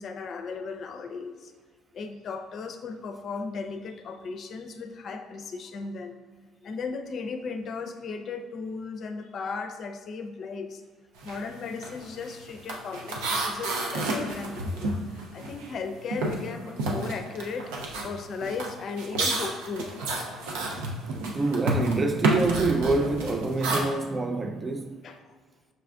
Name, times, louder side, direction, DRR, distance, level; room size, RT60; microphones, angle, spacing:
voice 1, 0.0-1.5 1.9-6.2 6.6-10.8 11.2-19.9 25.0-25.4, left 4 dB, 55° left, 0.5 m, -36 dB
sound 1, 11.2-11.5 11.7-15.8 16.1-23.8, right 2 dB, 85° right, 0.7 m, -30 dB
voice 2, 21.3-25.0, right 3 dB, 30° right, 0.3 m, -26 dB
5.9 x 2.5 x 3.4 m
supercardioid pair, 70°, 0 cm